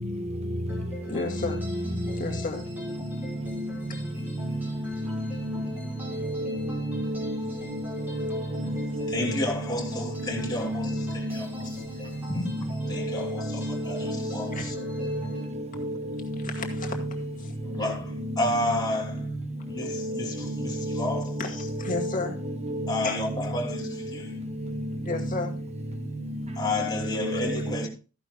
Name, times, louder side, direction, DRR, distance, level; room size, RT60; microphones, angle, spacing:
sound 1, 0.7-15.5, right 1 dB, 10° right, 5.0 m, -44 dB
voice 1, 1.1-1.7 2.2-2.7 14.6-14.7 16.4-17.0 17.4-17.5 21.4-22.4 23.0-23.2 25.0-25.5, left 3 dB, 45° left, 2.1 m, -32 dB
voice 2, 5.0-5.7 6.5-6.6 6.9-7.4 8.2-8.3 8.6-9.4 10.7-11.4 12.5-12.6 13.6-13.8 14.0-14.1 20.9-21.1 22.0-22.1 22.9-23.1 27.1-27.5, equal, 35° right, 1.0 m, -30 dB
voice 3, 8.5-11.8 12.3-12.5 12.9-14.7 15.6-16.0 17.7-19.2 19.7-21.3 22.9-24.4 26.6-27.9, left 1 dB, 20° left, 2.9 m, -31 dB
14.5 x 11.0 x 2.2 m
head